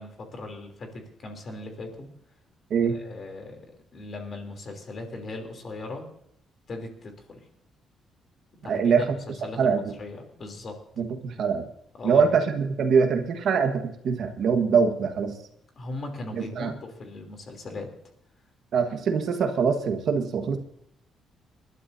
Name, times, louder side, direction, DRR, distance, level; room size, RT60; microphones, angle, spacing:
voice 1, 0.0-2.1 2.9-3.6 3.9-6.0 6.7-7.4 8.6-9.0 9.3-10.8 12.0-12.4 15.8-17.9, left 2 dB, 35° left, 4 dB, 3.2 m, -38 dB
voice 2, 8.7-9.0 9.6-9.8 11.0-11.7 12.0-15.4 16.3-16.7 18.7-20.6, right 6 dB, 50° right, 6 dB, 1.5 m, -23 dB
28.5 x 12.5 x 2.7 m, 0.72 s
cardioid pair, 175°, 0 cm